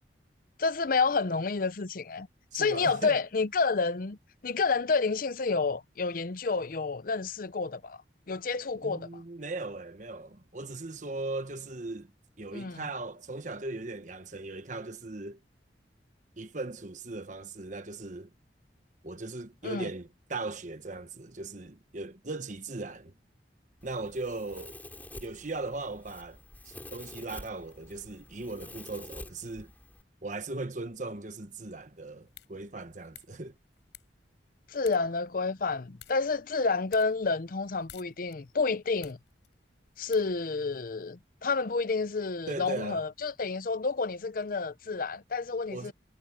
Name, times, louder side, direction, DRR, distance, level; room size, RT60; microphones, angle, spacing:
voice 1, 0.6-2.3 2.5-4.2 4.4-8.0 8.3-9.2 12.5-12.9 19.6-19.9 34.7-39.2 40.0-45.9, left 4 dB, 50° left, 0.6 m, -29 dB
voice 2, 2.5-3.2 8.8-12.1 12.4-15.4 16.4-18.3 19.0-23.1 23.8-24.8 25.2-26.4 26.6-29.7 30.2-33.5 42.5-43.0 45.7-45.9, right 2 dB, 45° right, 1.2 m, -38 dB
Domestic sounds home sounds, 23.8-30.0, left 1 dB, 10° left, 3.8 m, -48 dB
sound 1, 32.0-40.9, left 10 dB, 90° left, 4.6 m, -57 dB
head